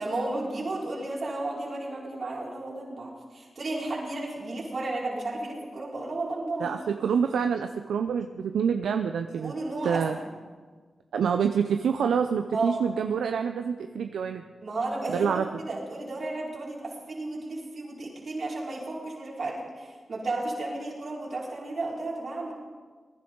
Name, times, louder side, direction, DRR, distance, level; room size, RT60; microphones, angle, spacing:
voice 1, 0.0-6.8 9.4-10.3 12.5-12.8 14.6-22.5, right 2 dB, 60° right, -4 dB, 4.7 m, -33 dB
voice 2, 6.6-9.5 9.8-10.2 11.1-14.4 15.1-15.5, right 7 dB, 85° right, 7 dB, 0.5 m, -27 dB
20.5 x 11.0 x 3.9 m, 1.5 s
supercardioid pair, 40°, 0 cm